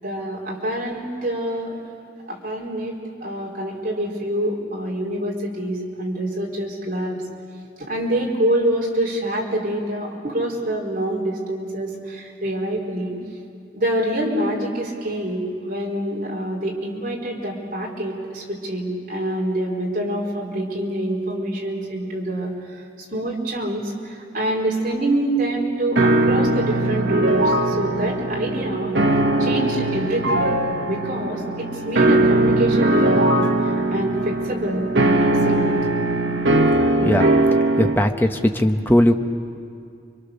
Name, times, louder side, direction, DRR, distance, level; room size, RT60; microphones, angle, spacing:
voice 1, 0.0-1.7 2.3-2.9 3.2-7.2 7.8-13.1 13.7-22.5 23.1-28.9 29.4-30.5 30.8-35.2 35.4-35.7, right 1 dB, 45° right, -3 dB, 4.3 m, -26 dB
sound 1, 26.0-38.0, right 2 dB, 75° right, 1.3 m, -20 dB
voice 2, 37.8-39.1, left 1 dB, 10° left, 4 dB, 0.9 m, -18 dB
29.5 x 24.0 x 6.8 m, 2.4 s
head